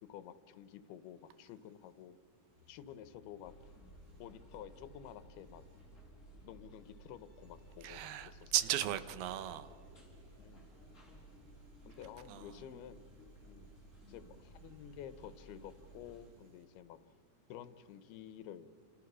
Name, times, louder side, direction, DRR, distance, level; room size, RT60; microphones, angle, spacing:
voice 1, 0.0-2.2 2.7-3.5 4.2-5.6 6.4-8.5 10.4-10.7 11.9-13.1 13.5-13.7 14.1-17.0 17.5-18.7, left 10 dB, 85° left, 13 dB, 2.9 m, -51 dB
sound 1, 2.5-6.0 6.4-12.0 12.4-16.3, left 3 dB, 15° right, 7.6 m, -68 dB
sound 2, 3.4-16.3, right 1 dB, 20° left, 5.0 m, -57 dB
voice 2, 7.8-9.7 12.3-12.5, right 12 dB, 80° right, 12 dB, 2.8 m, -36 dB
29.5 x 27.5 x 6.2 m, 2.3 s
omnidirectional pair, 4.4 m